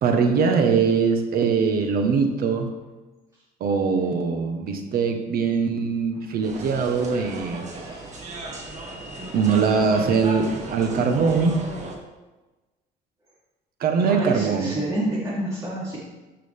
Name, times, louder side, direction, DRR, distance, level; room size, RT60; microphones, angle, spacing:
voice 1, 0.0-2.7 3.6-7.6 9.3-11.6 13.8-14.7, right 5 dB, 60° right, 5 dB, 1.5 m, -22 dB
sound 1, 6.4-12.0, right 2 dB, 45° right, 1.9 m, -35 dB
voice 2, 14.1-16.0, right 1 dB, 20° right, -10 dB, 3.9 m, -28 dB
14.5 x 6.7 x 3.7 m, 1.1 s
cardioid pair, 110°, 17 cm